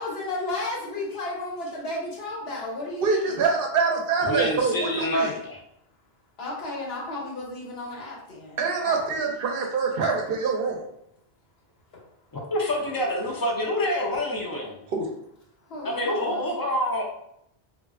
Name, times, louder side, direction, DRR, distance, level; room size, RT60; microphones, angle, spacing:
voice 1, 0.0-3.3 6.4-9.2 11.9-12.1 12.8-13.4 15.6-16.6, left 2 dB, 75° left, -3 dB, 1.1 m, -34 dB
voice 2, 3.0-5.3 8.6-10.8 14.9-15.1, right 4 dB, 65° right, 2 dB, 0.7 m, -25 dB
voice 3, 4.2-5.6 12.5-14.8 15.8-17.0, left 1 dB, 30° left, -1 dB, 0.4 m, -27 dB
3.0 x 2.4 x 2.4 m, 0.75 s
omnidirectional pair, 1.0 m